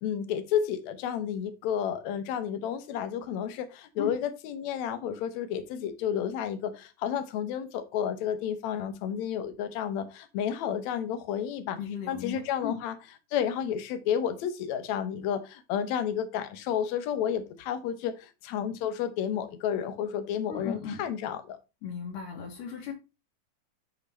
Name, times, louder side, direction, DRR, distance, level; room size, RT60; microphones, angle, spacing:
voice 1, 0.0-11.8 12.1-13.0 13.3-21.6, left 9 dB, 70° left, 2.0 m, -31 dB
voice 2, 11.8-12.8 20.5-21.0 21.8-22.9, left 7 dB, 85° left, 3.0 m, -36 dB
9.9 x 3.6 x 4.2 m
omnidirectional pair, 3.6 m